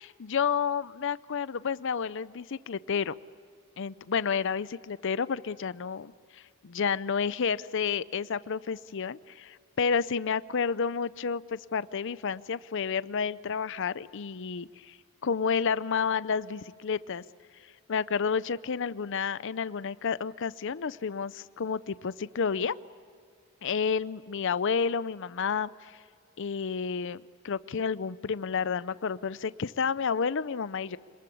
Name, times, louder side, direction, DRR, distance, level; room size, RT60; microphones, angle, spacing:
voice 1, 0.0-3.1 3.8-15.0 15.2-17.2 17.9-22.7 23.6-26.0 26.4-31.0, left 6 dB, 60° left, 17 dB, 0.6 m, -30 dB
26.5 x 20.5 x 8.5 m, 2.2 s
head